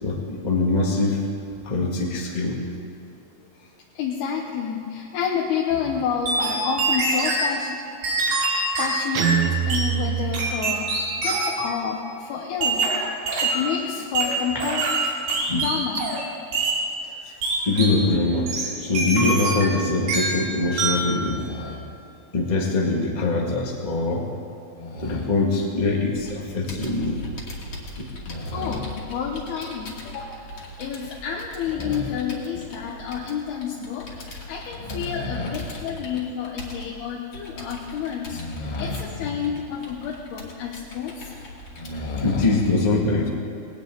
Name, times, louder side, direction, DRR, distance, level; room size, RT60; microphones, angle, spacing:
voice 1, 0.0-1.2 1.6-2.6 5.9-6.0 12.8-13.1 15.5-15.7 17.0-18.5 18.8-21.8 22.3-24.3 24.8-27.2 28.0-28.8 31.8-32.1 34.8-35.6 38.3-39.5 41.7-43.3, left 3 dB, 25° left, -1 dB, 0.8 m, -24 dB
voice 2, 3.9-7.8 8.4-13.0 13.4-15.2 15.5-16.2 28.5-30.5 30.8-38.4 38.8-41.3, left 7 dB, 80° left, -2 dB, 3.1 m, -29 dB
sound 1, 6.3-7.5 8.0-9.9 10.3-11.7 12.6-13.7 14.1-16.3 16.5-16.8 17.4-18.0 18.5-19.8 20.1-20.5 20.8-21.1, right 2 dB, 75° right, 4.5 m, -24 dB
Guitar, 9.1-11.2, right 10 dB, 90° right, 1.7 m, -25 dB
Computer keyboard, 26.1-42.7, left 1 dB, 40° left, 2.8 m, -41 dB
20.0 x 18.5 x 3.9 m, 2.8 s
omnidirectional pair, 4.6 m